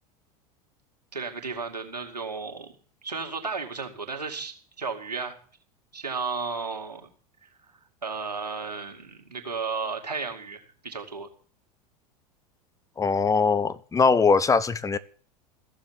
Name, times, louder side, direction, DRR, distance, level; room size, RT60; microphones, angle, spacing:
voice 1, 1.1-2.7 3.0-5.4 5.9-7.1 7.4-7.5 8.0-11.3, right 4 dB, 90° right, 2.6 m, -34 dB
voice 2, 13.0-15.0, left 4 dB, 15° left, 1.1 m, -21 dB
15.5 x 7.2 x 9.0 m
figure-of-eight pair, 85°, 20 cm